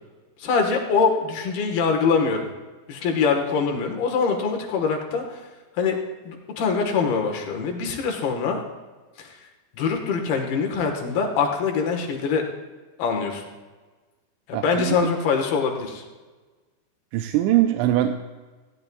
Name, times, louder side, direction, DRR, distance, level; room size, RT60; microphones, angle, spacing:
voice 1, 0.4-2.5 2.9-5.4 5.7-6.0 6.2-8.6 9.2-9.4 9.7-12.4 13.0-13.4 14.5-16.0, left 5 dB, 65° left, 2 dB, 3.0 m, -23 dB
voice 2, 14.5-14.9 17.1-18.2, right 13 dB, 85° right, 6 dB, 2.9 m, -22 dB
19.5 x 15.0 x 2.3 m, 1.3 s
omnidirectional pair, 5.2 m